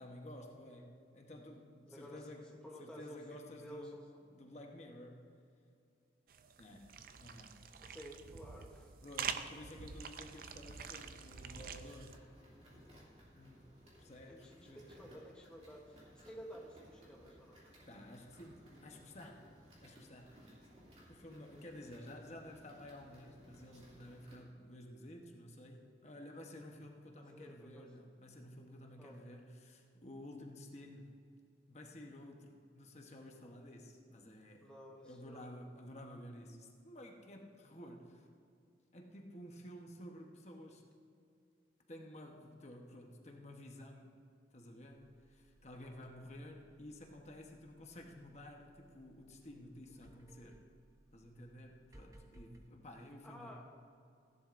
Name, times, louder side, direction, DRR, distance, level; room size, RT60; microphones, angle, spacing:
voice 1, 0.0-2.5 2.8-4.0 4.3-5.2 6.6-7.6 9.0-12.2 13.3-13.7 14.0-14.8 17.9-19.5 19.8-20.4 21.1-31.1 31.7-34.7 35.0-38.3 38.9-40.8 41.9-44.1 44.5-50.6 51.1-53.6, left 1 dB, 40° left, 2 dB, 1.0 m, -52 dB
voice 2, 1.9-3.2 3.6-4.0 7.8-8.9 14.3-17.6 21.2-21.6 22.1-22.3 27.3-27.9 29.0-29.2 34.6-35.5 45.8-46.0 53.2-53.7, equal, 5° left, -2 dB, 0.9 m, -53 dB
sound 1, 6.3-12.2, right 7 dB, 50° right, 0.5 m, -46 dB
sound 2, 10.7-24.4, equal, 35° right, 2.6 m, -61 dB
sound 3, 44.9-52.6, right 1 dB, 20° right, 0.8 m, -64 dB
16.5 x 10.5 x 2.6 m, 2.4 s
head